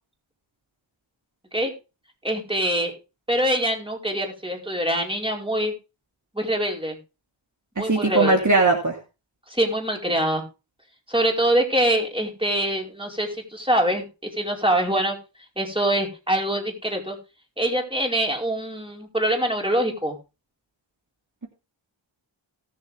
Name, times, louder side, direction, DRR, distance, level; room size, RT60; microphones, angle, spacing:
voice 1, 2.2-2.9 3.3-5.7 6.3-7.0 7.8-8.4 9.5-10.4 11.1-14.0 14.4-15.2 15.6-17.2 17.6-20.2, right 1 dB, 10° right, 1 dB, 4.9 m, -24 dB
voice 2, 7.8-9.0, right 3 dB, 40° right, 1 dB, 2.7 m, -19 dB
18.5 x 7.4 x 3.5 m, 0.30 s
cardioid pair, 60°, 47 cm